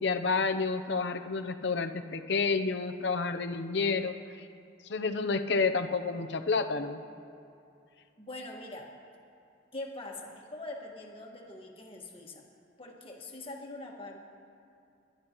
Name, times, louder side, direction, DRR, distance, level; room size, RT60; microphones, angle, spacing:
voice 1, 0.0-4.1 4.9-7.0, left 4 dB, 65° left, 8 dB, 0.7 m, -29 dB
voice 2, 8.2-8.9 9.7-12.4 12.8-14.2, left 2 dB, 30° left, 0 dB, 1.6 m, -43 dB
22.0 x 11.5 x 3.0 m, 2.6 s
head